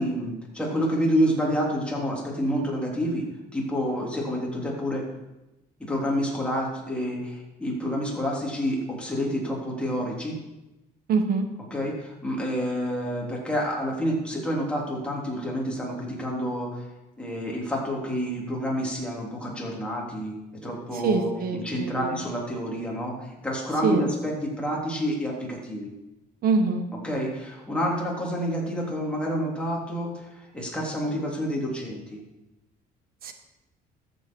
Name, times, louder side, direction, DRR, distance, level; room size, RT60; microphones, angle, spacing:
voice 1, 0.0-3.2 3.5-5.0 5.8-10.3 11.7-16.8 17.2-20.3 20.6-25.9 27.0-32.2, equal, 5° left, -3 dB, 3.4 m, -28 dB
voice 2, 11.1-11.5 20.9-22.2 23.8-24.1 26.4-26.8 33.2-33.3, right 4 dB, 60° right, 7 dB, 1.5 m, -24 dB
13.5 x 8.2 x 4.7 m, 0.98 s
cardioid pair, 110°, 17 cm